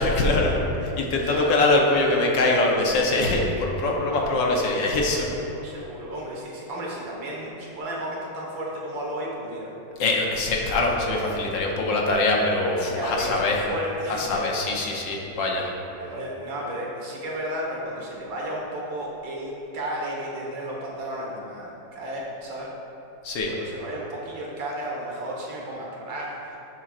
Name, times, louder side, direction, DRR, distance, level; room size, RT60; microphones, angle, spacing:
voice 1, 0.0-5.4 10.0-13.6 14.1-15.7 23.2-23.5, left 2 dB, 70° left, -1 dB, 1.5 m, -23 dB
voice 2, 1.3-1.7 4.1-4.2 5.6-9.7 13.0-14.5 16.0-22.7 23.5-26.6, right 1 dB, 75° right, -3 dB, 2.2 m, -33 dB
10.5 x 7.3 x 2.5 m, 2.9 s
omnidirectional pair, 2.2 m